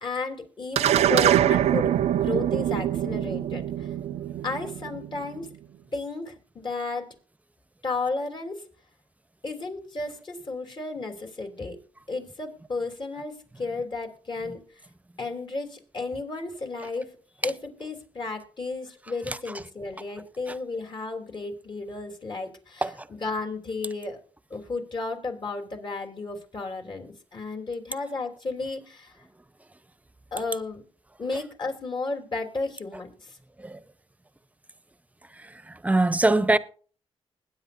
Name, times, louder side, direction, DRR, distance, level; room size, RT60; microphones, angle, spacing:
voice 1, 0.0-3.9 4.4-5.5 5.9-7.1 7.8-8.6 9.4-11.8 12.1-14.6 15.2-17.1 17.4-24.2 24.5-29.2 30.3-30.8 31.2-33.4, left 3 dB, 45° left, 3.1 m, -33 dB
sound 1, 0.8-5.4, right 11 dB, 85° right, 0.5 m, -24 dB
voice 2, 35.8-36.6, right 2 dB, 15° right, 0.8 m, -21 dB
21.0 x 9.7 x 2.6 m
cardioid pair, 70°, 11 cm